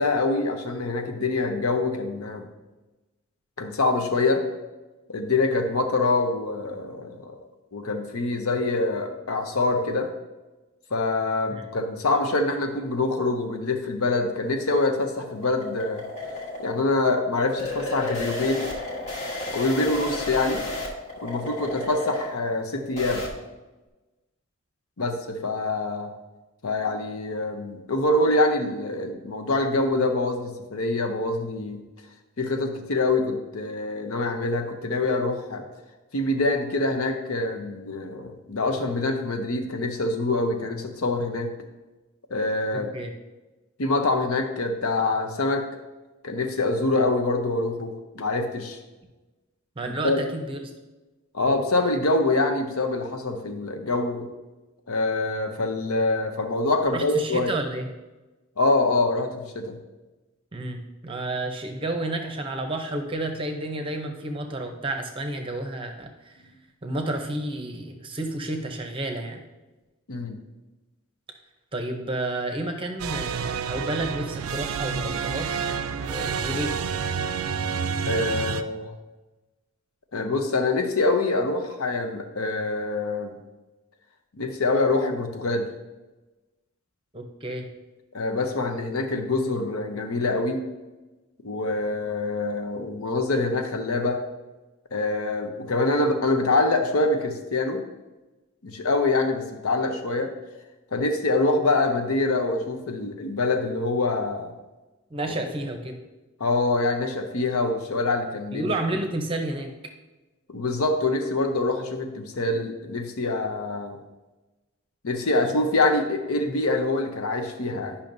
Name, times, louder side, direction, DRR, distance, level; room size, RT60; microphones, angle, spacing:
voice 1, 0.0-2.5 3.6-4.4 5.1-7.3 7.7-10.1 10.9-16.0 16.6-18.7 19.5-20.6 21.2-23.2 25.0-26.1 26.6-31.8 32.4-35.6 36.1-41.5 42.3-42.9 43.8-45.7 46.2-48.8 50.0-50.2 51.3-54.3 54.9-57.6 58.6-59.8 70.1-70.4 78.1-78.9 80.1-83.3 84.4-85.7 88.1-90.6 91.4-94.2 94.9-97.8 98.6-100.3 100.9-104.5 105.3-105.4 106.4-108.7 110.5-114.0 115.0-118.0, left 2 dB, 75° left, 5 dB, 0.8 m, -25 dB
sound 1, 14.3-23.3, left 1 dB, 30° left, 1.2 m, -34 dB
voice 2, 42.7-43.1 49.8-50.6 56.9-57.9 60.5-66.4 66.8-69.4 71.7-75.8 76.1-76.7 87.1-87.7 105.1-106.0 108.5-109.7, right 2 dB, 25° right, 5 dB, 0.7 m, -31 dB
sound 2, 73.0-78.6, right 6 dB, 80° right, 0.4 m, -29 dB
10.5 x 5.7 x 2.6 m, 1.1 s
head